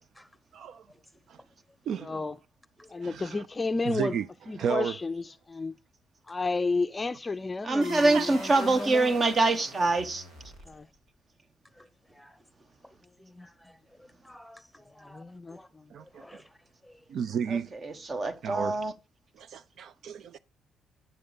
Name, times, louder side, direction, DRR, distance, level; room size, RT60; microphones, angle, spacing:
voice 1, 0.5-0.8 1.3-1.4 1.9-2.2 3.0-3.4 3.8-4.3 4.6-5.0 8.1-8.2 15.9-16.4 17.1-17.7 18.4-18.8 19.4-20.4, right 7 dB, 70° right, 0.4 m, -33 dB
voice 2, 2.0-2.4 2.9-4.1 4.5-5.7 6.3-9.1 10.7-10.9 13.2-13.5 15.0-15.8, left 3 dB, 25° left, 0.4 m, -32 dB
voice 3, 7.6-10.2 17.5-18.9, right 2 dB, 40° right, 1.0 m, -25 dB
sound 1, 7.8-11.0, right 1 dB, 85° right, 3.2 m, -44 dB
voice 4, 11.8-12.4 13.4-15.2 15.5-15.7 16.2-16.4 16.8-17.0, left 1 dB, ahead, 1.1 m, -54 dB
9.5 x 6.6 x 3.9 m
cardioid pair, 90°, 0 cm